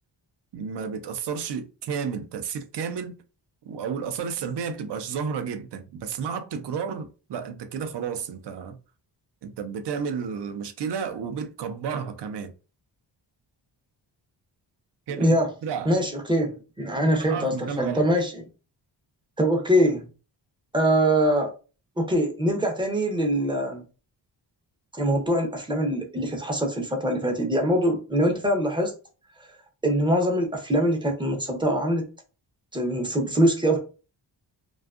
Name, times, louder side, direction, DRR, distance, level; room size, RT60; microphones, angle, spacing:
voice 1, 0.5-3.2 3.6-8.8 9.4-12.5 15.1-15.4 15.6-15.9 17.0-18.1, right 6 dB, 65° right, 0.5 m, -32 dB
voice 2, 15.1-15.5 15.9-18.3 19.4-20.1 20.7-21.5 22.0-23.8 24.9-28.9 29.8-32.0 32.7-33.8, equal, 10° right, 0.5 m, -23 dB
2.5 x 2.3 x 2.3 m
wide cardioid pair, 160°, 46 cm